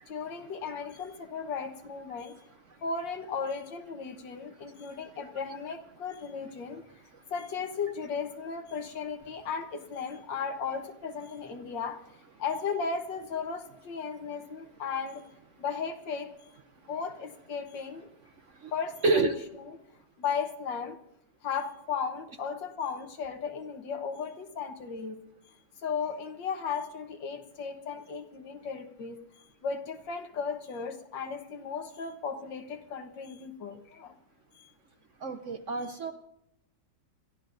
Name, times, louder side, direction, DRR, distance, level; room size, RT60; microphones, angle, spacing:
voice 1, 0.1-2.4 2.8-6.8 7.3-12.0 12.4-15.2 15.6-16.3 16.9-18.1 18.7-19.3 20.2-21.0 21.4-25.2 25.8-29.2 29.6-34.1 34.6-34.7, left 5 dB, 85° left, 6 dB, 1.9 m, -35 dB
voice 2, 4.5-4.9 7.1-7.2 16.8-16.9 18.4-18.7 19.0-19.3 35.2-36.1, right 3 dB, 60° right, 7 dB, 0.8 m, -30 dB
28.5 x 13.5 x 2.6 m, 0.79 s
omnidirectional pair, 1.9 m